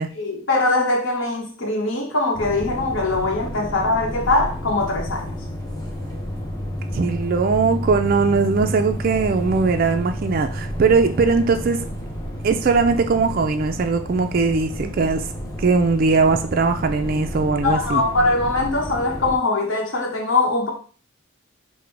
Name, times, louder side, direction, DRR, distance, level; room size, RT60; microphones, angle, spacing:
voice 1, 0.2-5.3 17.6-20.7, left 2 dB, 60° left, 1.1 m, -22 dB
sound 1, 2.3-19.4, equal, 15° left, 0.7 m, -30 dB
voice 2, 6.9-11.8 12.4-15.3 15.6-18.0, right 4 dB, 45° right, 0.3 m, -20 dB
5.9 x 2.1 x 3.2 m
head